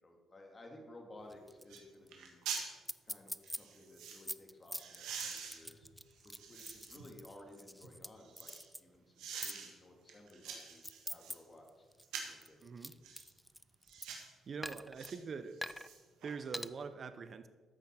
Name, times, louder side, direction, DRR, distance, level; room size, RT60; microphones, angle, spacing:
voice 1, 0.0-2.5 3.0-5.9 6.2-8.5 8.8-11.9 12.2-12.6, left 1 dB, 30° left, 2 dB, 2.1 m, -56 dB
sound 1, 1.2-1.3 1.7-1.8 2.1-2.7 3.4-4.2 4.8-7.1 7.6-8.7 9.2-9.7 10.1-11.4 12.0-12.4 13.0-13.3 13.9-14.3 15.0-15.2 15.5-16.3 16.7-16.8, right 6 dB, 90° right, 1.6 m, -46 dB
sound 2, 1.3-1.8 2.1-2.2 2.6-2.7 2.9-3.6 4.0-8.1 8.4-8.8 9.4-9.6 10.3-11.3 11.7-14.2 14.6-15.1 15.6-15.9 16.5-16.7, equal, ahead, 0.3 m, -44 dB
voice 2, 12.6-12.9 14.5-15.6 16.2-17.5, right 5 dB, 50° right, 12 dB, 0.7 m, -44 dB
13.5 x 5.8 x 4.4 m, 1.4 s
cardioid pair, 90°, 0 cm